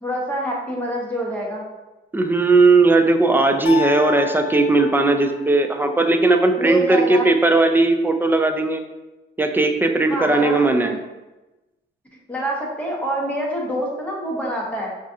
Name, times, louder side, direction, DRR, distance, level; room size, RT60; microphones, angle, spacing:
voice 1, 0.0-1.6 6.6-7.3 10.1-10.5 10.8-11.0 12.3-14.9, equal, 5° left, -3 dB, 1.0 m, -26 dB
voice 2, 2.1-8.8 9.4-10.9, right 3 dB, 10° right, 6 dB, 0.3 m, -17 dB
sound 1, 3.7-5.8, left 9 dB, 65° left, 0.8 m, -30 dB
4.9 x 2.4 x 2.6 m, 1.1 s
cardioid pair, 90°, 20 cm